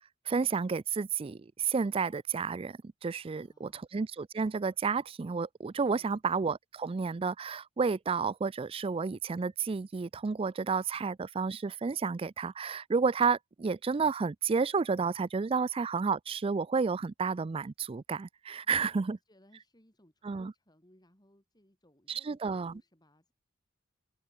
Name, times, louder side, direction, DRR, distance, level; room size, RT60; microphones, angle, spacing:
voice 1, 0.3-19.2 20.2-20.5 22.1-22.7, right 5 dB, 25° right, 0.3 m, -31 dB
voice 2, 3.3-3.9 5.9-6.2 18.6-23.3, equal, 20° left, 5.8 m, -64 dB
open air
head